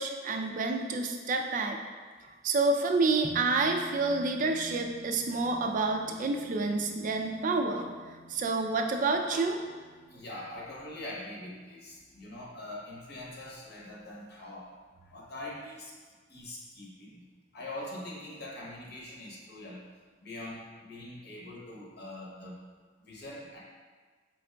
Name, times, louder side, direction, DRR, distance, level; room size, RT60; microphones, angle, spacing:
voice 1, 0.0-1.8 2.4-7.9 8.3-9.6, right 3 dB, 45° right, 4 dB, 0.4 m, -28 dB
sound 1, 3.2-13.9, equal, 35° left, 0.4 m, -50 dB
voice 2, 10.1-14.7 15.1-15.9 16.3-17.3 17.5-19.8 20.2-22.6 23.0-23.6, left 1 dB, 60° left, -4 dB, 0.9 m, -43 dB
4.6 x 3.7 x 2.2 m, 1.5 s
head